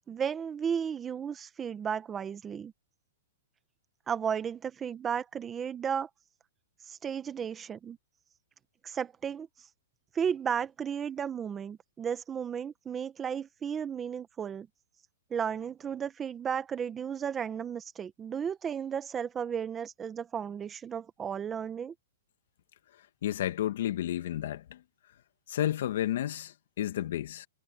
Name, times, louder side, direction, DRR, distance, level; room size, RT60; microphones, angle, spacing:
voice 1, 0.1-2.7 4.1-6.1 6.9-8.0 8.8-9.5 10.1-14.7 15.3-21.9, right 7 dB, 15° right, 1.2 m, -34 dB
voice 2, 23.2-24.8 25.5-27.5, left 12 dB, 60° left, 1.8 m, -31 dB
hypercardioid pair, 155°, 0 cm